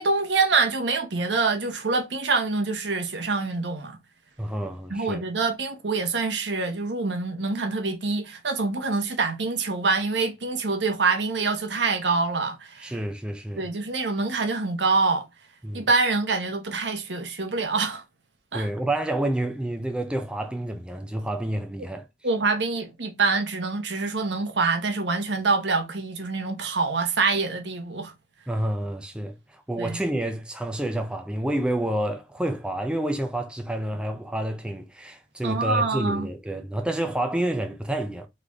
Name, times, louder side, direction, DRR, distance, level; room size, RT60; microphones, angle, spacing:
voice 1, 0.0-4.0 4.9-13.0 13.6-15.3 15.7-18.0 18.5-18.7 22.2-28.1 29.8-30.0 35.4-36.3, right 4 dB, 70° right, 1.0 m, -25 dB
voice 2, 4.4-5.2 12.8-13.7 15.6-15.9 18.5-22.1 28.5-38.3, right 1 dB, 5° right, 0.4 m, -29 dB
3.9 x 3.3 x 3.4 m
head